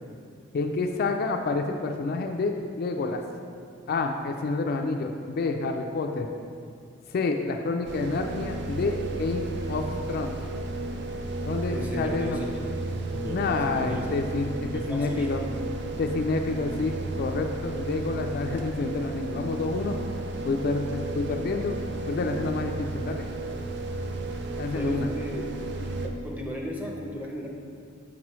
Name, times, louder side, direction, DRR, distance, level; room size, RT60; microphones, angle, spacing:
voice 1, 0.5-3.2 3.9-6.3 7.1-10.4 11.5-12.4 13.3-15.4 16.0-20.0 20.4-21.8 22.1-23.2 24.6-25.1, left 3 dB, 50° left, 4 dB, 0.3 m, -28 dB
sound 1, 7.8-26.1, right 2 dB, 60° right, 0.4 m, -33 dB
voice 2, 11.7-12.5 12.9-14.1 14.7-15.4 24.7-25.4 25.8-27.5, equal, 10° right, -2 dB, 0.7 m, -35 dB
6.0 x 5.9 x 3.1 m, 2.3 s
head